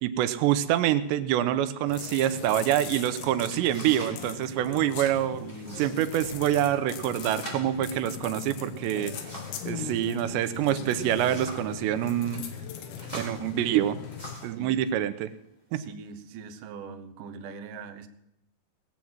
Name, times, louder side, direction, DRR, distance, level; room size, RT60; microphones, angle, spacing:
voice 1, 0.0-5.4 5.8-9.1 9.7-12.4 13.1-14.0 14.4-15.3 15.7-15.8, right 12 dB, 90° right, 11 dB, 2.9 m, -26 dB
sound 1, 1.9-14.4, left 7 dB, 85° left, 3.6 m, -39 dB
sound 2, 3.5-4.2 4.5-5.0 5.5-6.0 6.3-6.4 7.0-9.7 10.7-11.7 12.2-12.4 13.0-14.6 15.4-15.5 16.1-16.6, equal, 10° left, 3.7 m, -44 dB
voice 2, 5.4-5.8 14.6-14.8 15.7-18.1, right 5 dB, 75° right, 8 dB, 2.0 m, -42 dB
19.5 x 7.3 x 7.8 m, 0.82 s
omnidirectional pair, 5.0 m